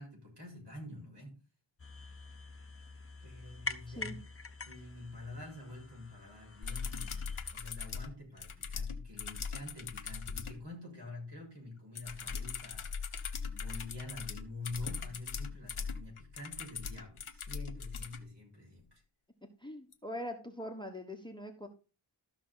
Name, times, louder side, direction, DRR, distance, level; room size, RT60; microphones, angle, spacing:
voice 1, 0.0-1.3 3.2-4.2 4.7-7.2 7.5-12.9 13.5-19.0, left 2 dB, 55° right, -1 dB, 6.7 m, -47 dB
sound 1, 1.8-7.5, left 4 dB, 30° left, 0.9 m, -46 dB
sound 2, 6.6-10.6 12.0-18.2 19.9-20.0, left 5 dB, 85° left, 1.2 m, -40 dB
voice 2, 19.6-21.7, left 1 dB, 10° left, 5 dB, 1.3 m, -42 dB
13.5 x 5.9 x 4.1 m, 0.32 s
wide cardioid pair, 65°, 48 cm